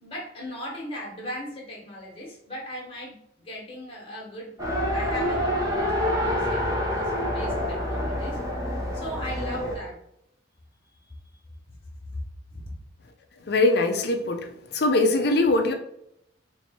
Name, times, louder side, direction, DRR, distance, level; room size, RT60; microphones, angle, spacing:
voice 1, 0.0-3.2 3.4-4.5 4.9-8.4 8.8-9.9 12.0-12.1 12.5-12.6, equal, 30° left, -3 dB, 1.3 m, -38 dB
Race car auto racing, 4.6-9.8, equal, 15° right, 0.8 m, -27 dB
voice 2, 13.5-14.4 14.7-15.7, left 2 dB, 55° left, 5 dB, 0.5 m, -21 dB
3.1 x 3.1 x 4.3 m, 0.77 s
head